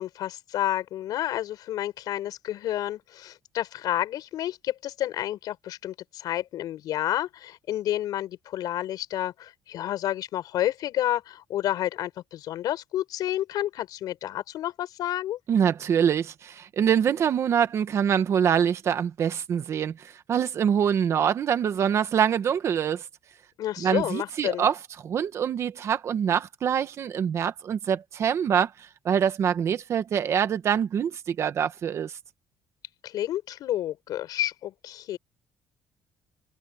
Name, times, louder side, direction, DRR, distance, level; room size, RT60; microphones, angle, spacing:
voice 1, 0.0-15.4 23.6-24.7 33.0-35.2, left 13 dB, 65° left, 5.8 m, -30 dB
voice 2, 15.5-23.1 23.8-24.8 25.0-32.1, right 8 dB, 40° right, 1.3 m, -25 dB
cardioid pair, 170°, 7 cm